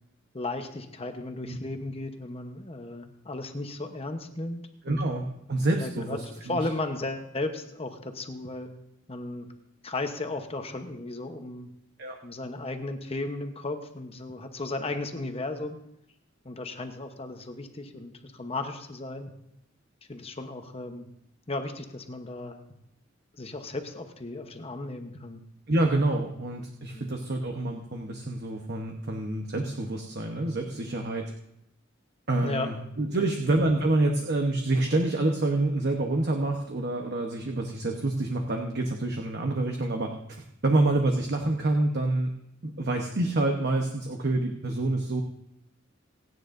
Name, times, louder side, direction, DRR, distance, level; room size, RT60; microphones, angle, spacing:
voice 1, 0.3-5.0 5.8-8.7 9.1-9.5 9.8-11.7 12.2-15.8 16.4-19.3 20.1-21.1 21.5-22.6 23.4-25.4 26.9-27.2 32.4-32.7, left 2 dB, 30° left, 6 dB, 1.0 m, -35 dB
voice 2, 4.8-6.6 12.0-12.2 25.7-31.3 32.3-40.1 40.6-42.3 42.6-45.2, right 2 dB, 55° right, 2 dB, 1.0 m, -27 dB
27.5 x 9.4 x 2.6 m, 0.78 s
head